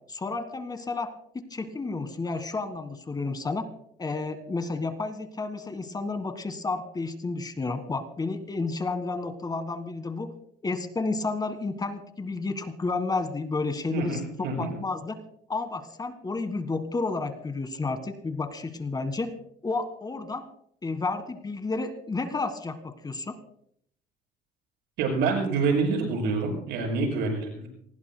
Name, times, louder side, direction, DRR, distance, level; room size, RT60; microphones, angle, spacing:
voice 1, 0.1-3.6 4.0-10.3 10.6-15.2 15.5-19.3 19.6-20.4 20.8-23.4, left 3 dB, 25° left, 9 dB, 1.6 m, -31 dB
voice 2, 13.9-14.7 25.0-27.7, right 4 dB, 85° right, 1 dB, 6.9 m, -27 dB
27.5 x 20.0 x 2.2 m, 0.68 s
cardioid pair, 110°, 17 cm